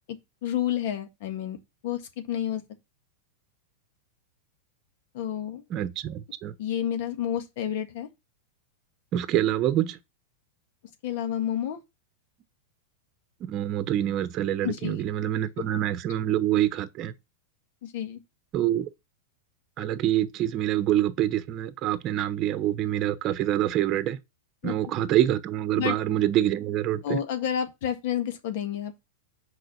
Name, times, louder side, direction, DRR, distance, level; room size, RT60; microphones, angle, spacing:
voice 1, 0.4-1.6 1.8-2.0 2.3-2.6 5.1-5.6 6.6-8.1 11.0-11.8 14.6-15.0 17.8-18.2 24.6-24.7 25.8-26.0 27.0-29.0, left 10 dB, 60° left, 1.8 m, -29 dB
voice 2, 5.7-6.5 9.1-10.0 13.4-17.1 18.5-18.9 19.8-24.2 24.6-27.2, right 12 dB, 40° right, 0.9 m, -26 dB
6.6 x 5.0 x 5.9 m
hypercardioid pair, 115°, 0 cm